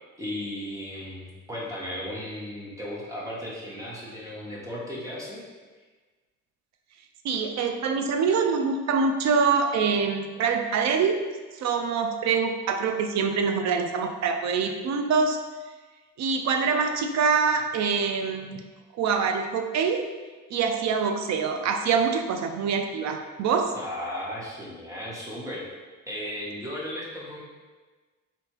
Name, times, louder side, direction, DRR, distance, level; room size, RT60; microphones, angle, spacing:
voice 1, 0.2-5.4 23.7-25.6 26.1-27.4, left 1 dB, 10° right, -6 dB, 0.9 m, -35 dB
voice 2, 7.2-11.2 11.6-15.4 16.2-18.6 18.9-20.0 20.5-23.7, right 5 dB, 65° right, 6 dB, 0.4 m, -25 dB
3.3 x 2.7 x 2.9 m, 1.3 s
cardioid pair, 90°, 30 cm